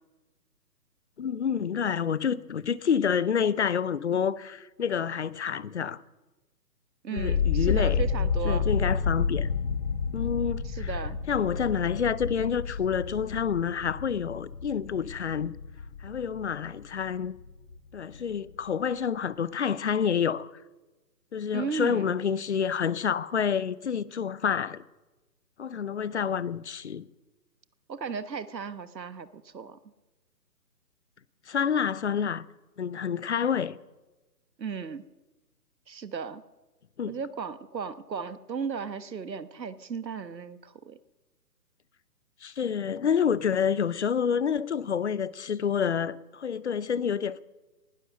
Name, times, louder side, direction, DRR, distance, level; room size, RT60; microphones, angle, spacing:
voice 1, 1.2-6.0 7.1-8.0 8.4-9.5 10.1-10.9 11.3-15.5 16.0-17.4 17.9-20.5 21.3-24.8 25.6-27.1 31.5-32.4 32.8-33.8 37.0-37.2 42.4-47.4, left 7 dB, 45° left, 0.6 m, -28 dB
voice 2, 7.0-8.7 10.6-11.2 21.5-22.1 27.9-29.8 34.6-35.0 35.9-36.4 37.1-41.0, right 6 dB, 85° right, 1.3 m, -35 dB
sound 1, 7.2-17.2 17.4-18.2, left 5 dB, 25° left, 0.9 m, -30 dB
19.0 x 11.5 x 6.5 m
hypercardioid pair, 150°, 49 cm